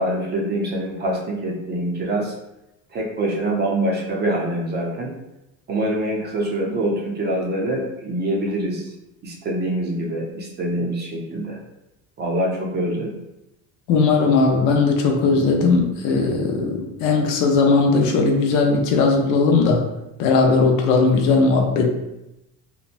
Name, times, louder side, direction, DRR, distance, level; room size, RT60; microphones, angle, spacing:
voice 1, 0.0-2.3 2.9-5.1 5.7-8.9 9.2-11.6 12.2-13.2, right 1 dB, 30° right, -1 dB, 0.5 m, -25 dB
voice 2, 13.9-19.8 20.2-21.9, left 4 dB, 70° left, 2 dB, 0.6 m, -18 dB
3.0 x 2.1 x 2.5 m, 0.91 s
cardioid pair, 135°, 33 cm